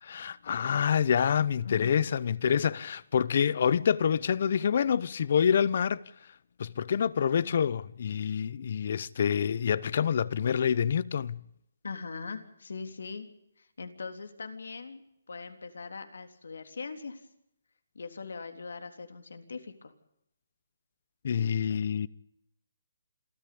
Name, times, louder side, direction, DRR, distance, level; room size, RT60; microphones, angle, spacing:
voice 1, 0.0-6.0 6.6-11.4 21.2-22.1, left 7 dB, 45° left, 0.8 m, -27 dB
voice 2, 1.6-2.2 11.8-13.3 13.6-15.0 15.3-17.3 18.0-19.9, left 4 dB, 80° left, 3.4 m, -41 dB
27.0 x 14.0 x 8.6 m
hypercardioid pair, 165°, 0 cm